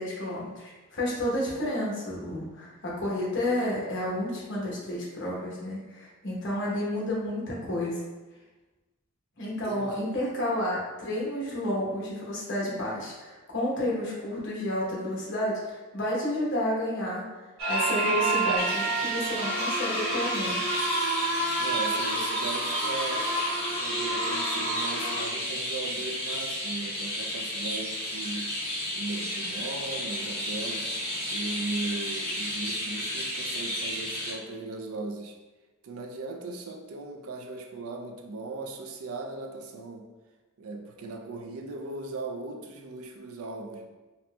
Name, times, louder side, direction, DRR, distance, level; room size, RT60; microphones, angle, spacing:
voice 1, 0.0-8.0 9.4-17.2 17.7-20.8, left 1 dB, 60° left, -5 dB, 1.0 m, -31 dB
voice 2, 9.6-10.2 21.6-23.3 23.8-28.5 28.9-30.9 31.3-35.4 35.8-40.1 40.6-43.9, right 3 dB, 80° right, 4 dB, 0.4 m, -38 dB
sound 1, 17.6-25.2, right 2 dB, 60° right, 1.1 m, -29 dB
Chirp tweet, 18.6-34.3, equal, 30° left, 1.0 m, -33 dB
4.0 x 2.6 x 2.3 m, 1.2 s
head